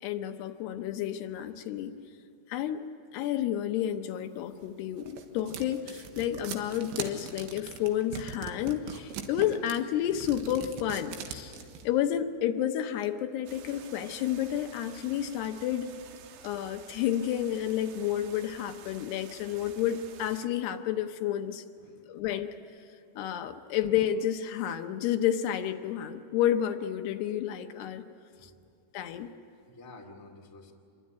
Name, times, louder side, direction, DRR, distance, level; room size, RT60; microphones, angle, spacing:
voice 1, 0.0-1.9 2.5-2.9 3.1-11.6 11.8-15.9 16.4-21.6 22.1-22.6 23.2-28.0 28.4-28.5 28.9-29.3, left 11 dB, 75° left, 7 dB, 2.8 m, -30 dB
sound 1, 4.6-11.9, right 7 dB, 85° right, 3.8 m, -41 dB
sound 2, 13.5-20.5, right 8 dB, 70° right, 2.7 m, -51 dB
voice 2, 21.8-22.2 28.3-28.7 29.6-30.7, left 2 dB, 10° left, 0 dB, 1.0 m, -51 dB
26.5 x 23.0 x 9.4 m, 2.5 s
omnidirectional pair, 5.0 m